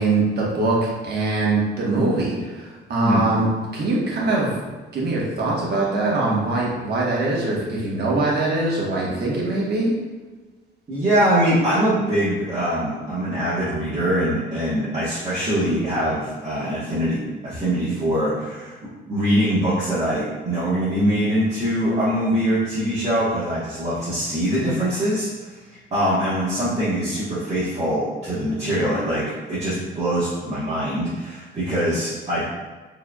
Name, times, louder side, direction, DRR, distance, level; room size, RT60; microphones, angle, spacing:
voice 1, 0.0-4.5 4.9-9.9, right 2 dB, 55° right, -4 dB, 1.3 m, -22 dB
voice 2, 10.9-18.8 19.1-25.6 25.9-32.4, equal, 30° right, -11 dB, 1.4 m, -23 dB
4.4 x 3.4 x 2.4 m, 1.3 s
cardioid pair, 90°, 20 cm